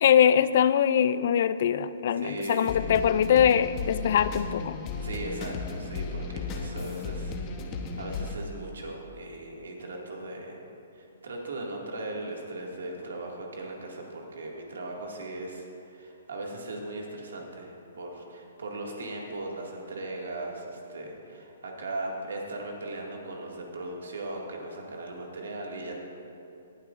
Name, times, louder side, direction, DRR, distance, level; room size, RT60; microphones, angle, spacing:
voice 1, 0.0-4.8, left 9 dB, 55° left, 15 dB, 0.3 m, -22 dB
voice 2, 2.1-2.8 5.0-7.3 7.7-10.6 10.9-26.0, right 2 dB, 85° right, 0 dB, 2.0 m, -38 dB
sound 1, 2.4-8.3, left 4 dB, 30° left, 0.9 m, -35 dB
18.0 x 9.0 x 2.5 m, 2.8 s
hypercardioid pair, 150°, 0 cm